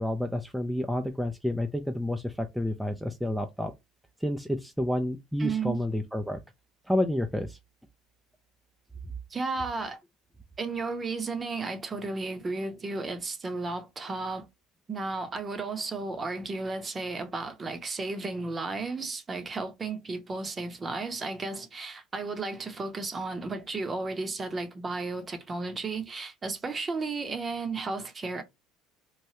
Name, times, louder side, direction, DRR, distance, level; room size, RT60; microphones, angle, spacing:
voice 1, 0.0-3.7 4.2-6.4 6.9-7.6, left 1 dB, ahead, 0.4 m, -29 dB
voice 2, 5.4-5.8 9.3-10.0 10.6-14.5 14.9-28.4, right 3 dB, 25° right, 0.7 m, -33 dB
3.1 x 2.2 x 2.7 m
supercardioid pair, 95°, 0 cm